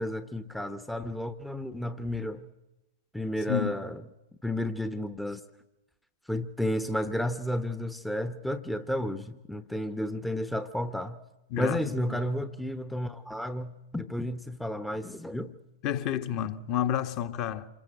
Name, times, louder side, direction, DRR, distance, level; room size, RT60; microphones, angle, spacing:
voice 1, 0.0-2.5 3.1-4.0 4.4-5.4 6.3-11.2 11.6-15.5, left 1 dB, ahead, 1.0 m, -32 dB
voice 2, 11.5-12.2 15.8-17.7, left 10 dB, 35° left, 1.4 m, -30 dB
27.0 x 22.5 x 7.8 m
figure-of-eight pair, 100°, 0 cm